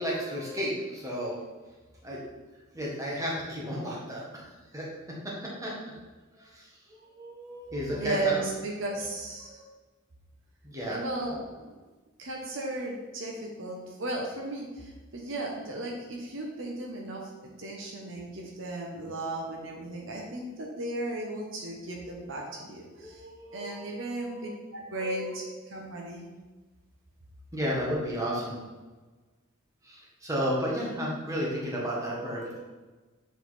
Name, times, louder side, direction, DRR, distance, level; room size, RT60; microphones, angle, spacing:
voice 1, 0.0-1.4 2.0-2.2 2.7-4.9 5.2-5.7 6.3-8.3 8.9-9.1 9.5-9.7 10.6-11.3 23.0-24.5 25.0-25.4 27.5-28.6 29.8-32.6, equal, 15° right, -5 dB, 1.5 m, -33 dB
voice 2, 7.9-9.6 10.9-11.4 11.7-11.8 12.2-23.3 23.5-26.3, right 2 dB, 65° right, 0 dB, 1.0 m, -35 dB
7.3 x 4.1 x 4.1 m, 1.2 s
head